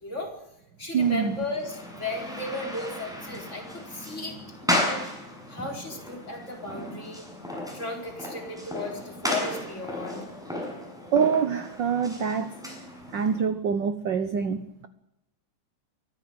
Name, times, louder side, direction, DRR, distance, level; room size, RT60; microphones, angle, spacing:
voice 1, 0.0-0.3 0.8-4.4 4.9-5.1 5.5-7.2 7.7-10.2, left 2 dB, 20° left, 1 dB, 4.8 m, -35 dB
voice 2, 0.9-1.4 11.1-12.5 13.1-14.9, right 6 dB, 60° right, 11 dB, 1.2 m, -25 dB
sound 1, 1.0-13.4, left 1 dB, ahead, 7.1 m, -34 dB
23.5 x 15.5 x 8.8 m, 0.82 s
omnidirectional pair, 3.5 m